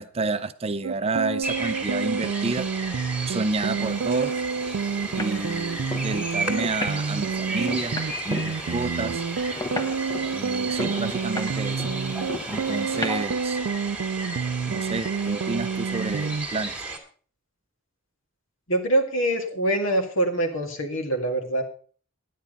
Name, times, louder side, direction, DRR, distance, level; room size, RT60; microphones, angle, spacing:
voice 1, 0.0-2.7 3.3-4.4 5.1-8.0 8.2-9.2 10.3-11.8 12.5-13.6 14.7-16.7, right 3 dB, 30° right, 0.5 m, -30 dB
sound 1, 0.8-16.5, right 5 dB, 80° right, 0.4 m, -29 dB
sound 2, 1.4-17.0, right 3 dB, 5° right, 2.0 m, -34 dB
sound 3, 3.8-13.3, left 2 dB, 15° left, 1.0 m, -37 dB
voice 2, 18.7-21.6, right 1 dB, 65° left, 2.0 m, -24 dB
10.5 x 9.5 x 5.2 m
head